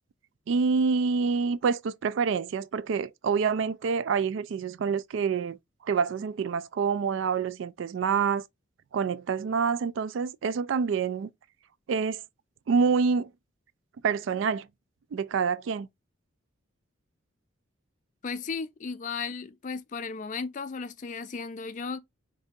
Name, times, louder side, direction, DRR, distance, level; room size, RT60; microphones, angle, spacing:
voice 1, 0.5-5.6 5.8-8.4 8.9-11.3 11.9-12.2 12.7-13.3 14.0-14.7 15.1-15.9, right 5 dB, 70° right, 0.3 m, -27 dB
voice 2, 18.2-22.0, left 5 dB, 40° left, 0.3 m, -35 dB
3.8 x 2.7 x 3.4 m
head